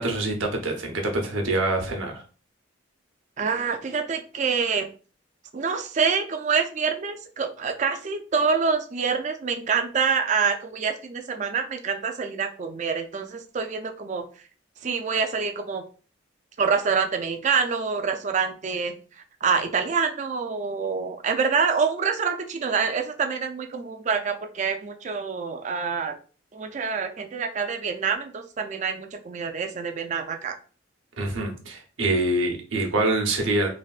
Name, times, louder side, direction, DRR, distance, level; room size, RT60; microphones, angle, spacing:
voice 1, 0.0-2.2 31.2-33.7, right 2 dB, 90° right, 2 dB, 0.9 m, -25 dB
voice 2, 3.4-4.9 5.5-14.2 14.8-15.8 16.6-18.9 19.4-26.2 26.5-30.5, right 5 dB, 40° right, 6 dB, 0.4 m, -26 dB
3.4 x 2.6 x 2.4 m, 0.38 s
head